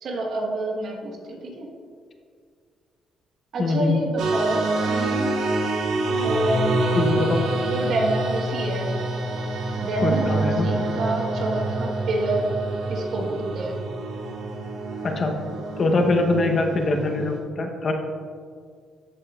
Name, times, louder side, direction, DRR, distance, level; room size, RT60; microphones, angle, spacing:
voice 1, 0.0-1.7 3.5-5.4 6.2-6.9 7.5-8.9 9.8-12.5 12.9-13.8, right 2 dB, 65° right, 0 dB, 1.3 m, -28 dB
voice 2, 3.6-4.0 7.0-7.4 10.0-10.7 15.0-15.4 15.8-17.9, left 2 dB, 45° left, 4 dB, 0.9 m, -23 dB
sound 1, 4.2-17.4, right 2 dB, 80° right, 0.9 m, -27 dB
13.0 x 5.1 x 2.4 m, 2.1 s
cardioid pair, 90°, 0 cm